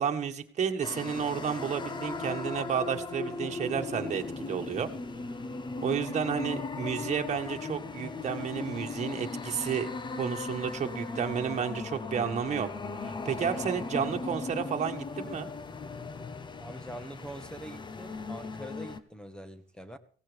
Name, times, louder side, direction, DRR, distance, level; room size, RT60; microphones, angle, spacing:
voice 1, 0.0-4.9 5.8-9.9 10.2-12.7 13.0-15.5, right 7 dB, 40° right, 4 dB, 1.7 m, -31 dB
sound 1, 0.8-19.0, left 3 dB, 25° left, 1.0 m, -37 dB
voice 2, 16.6-20.0, right 1 dB, 5° left, 11 dB, 1.3 m, -44 dB
17.0 x 15.5 x 3.6 m, 0.44 s
cardioid pair, 110°, 17 cm